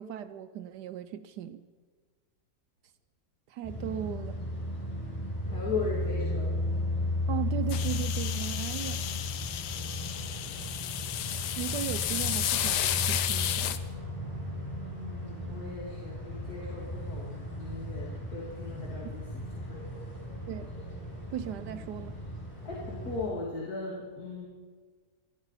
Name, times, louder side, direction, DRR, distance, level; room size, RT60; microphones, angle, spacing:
voice 1, 0.0-1.7 3.5-4.3 7.3-9.0 11.6-13.8 20.5-20.7 21.3-22.2, right 10 dB, 80° right, 10 dB, 1.2 m, -37 dB
sound 1, 3.6-23.3, left 1 dB, 20° left, 6.6 m, -35 dB
voice 2, 5.5-6.6 15.0-20.0 22.6-24.5, left 3 dB, 60° left, -4 dB, 2.8 m, -38 dB
sound 2, 7.7-13.8, left 11 dB, 75° left, 1.3 m, -32 dB
19.0 x 13.5 x 5.6 m, 1.5 s
omnidirectional pair, 1.8 m